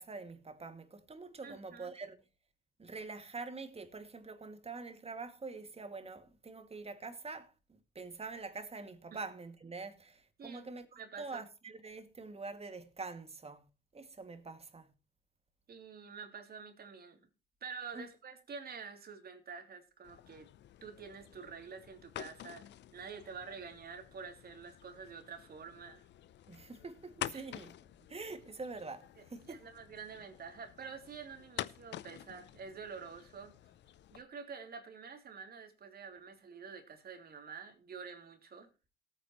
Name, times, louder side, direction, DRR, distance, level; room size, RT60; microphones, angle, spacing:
voice 1, 0.0-2.2 2.8-13.7 13.9-14.9 17.9-18.1 26.5-27.8 28.1-29.6, right 3 dB, 30° right, 2.3 m, -45 dB
voice 2, 1.4-1.9 9.1-9.2 10.4-10.6 10.9-11.4 15.7-17.2 17.6-20.5 20.8-26.1 27.3-27.5 29.5-33.5 34.1-38.7, right 5 dB, 50° right, 3.1 m, -48 dB
sound 1, 20.0-34.2, left 12 dB, 60° left, 0.7 m, -49 dB
19.0 x 9.1 x 3.1 m
hypercardioid pair, 55°, 20 cm